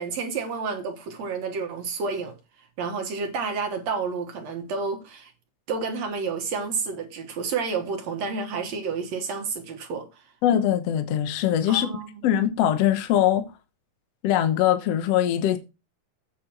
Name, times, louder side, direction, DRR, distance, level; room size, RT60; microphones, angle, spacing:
voice 1, 0.0-5.3 5.7-10.3 11.7-12.1, right 5 dB, 60° right, 2.5 m, -30 dB
voice 2, 10.4-11.9 12.2-13.5 14.2-15.6, left 11 dB, 65° left, 1.9 m, -22 dB
8.8 x 6.0 x 6.0 m
omnidirectional pair, 3.6 m